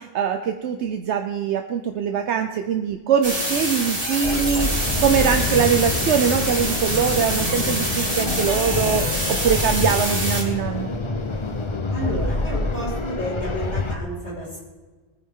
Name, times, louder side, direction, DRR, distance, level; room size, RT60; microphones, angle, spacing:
voice 1, 0.0-10.9, right 7 dB, 75° right, 6 dB, 1.0 m, -23 dB
sound 1, 3.2-10.4, right 1 dB, 30° right, 3.7 m, -26 dB
sound 2, 4.2-14.0, left 3 dB, 30° left, 0.9 m, -27 dB
voice 2, 11.9-14.6, equal, 75° left, -8 dB, 5.0 m, -31 dB
22.5 x 9.8 x 3.7 m, 1.3 s
omnidirectional pair, 1.2 m